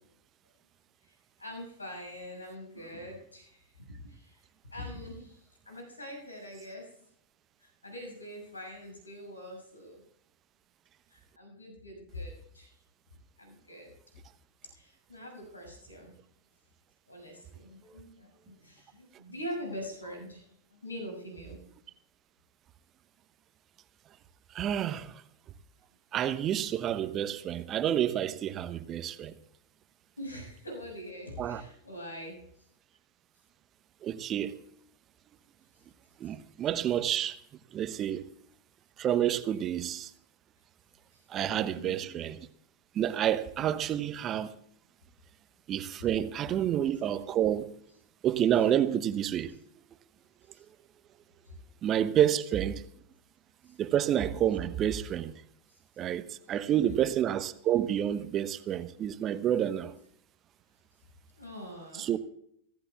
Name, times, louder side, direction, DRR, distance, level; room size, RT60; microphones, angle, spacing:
voice 1, 1.0-4.4 4.7-7.1 7.6-10.0 11.1-12.8 13.4-14.2 14.6-16.1 17.1-21.6 30.2-32.7 35.7-35.8 36.2-36.3 41.1-42.1 43.6-43.8 46.0-46.1 50.5-50.6 51.4-51.6 53.6-53.8 55.7-55.8 56.4-57.0 61.4-62.2, left 1 dB, 80° left, 6.6 m, -44 dB
voice 2, 24.5-25.1 26.1-29.3 31.4-31.6 34.0-34.6 36.2-37.4 37.7-38.2 39.0-40.1 41.3-42.4 42.9-44.5 45.7-47.7 48.2-49.5 51.8-52.8 53.8-55.3 56.0-56.2 56.5-59.9 62.0-62.2, right 10 dB, 30° right, 0.9 m, -29 dB
25.5 x 16.0 x 2.4 m
figure-of-eight pair, 90°, 0 cm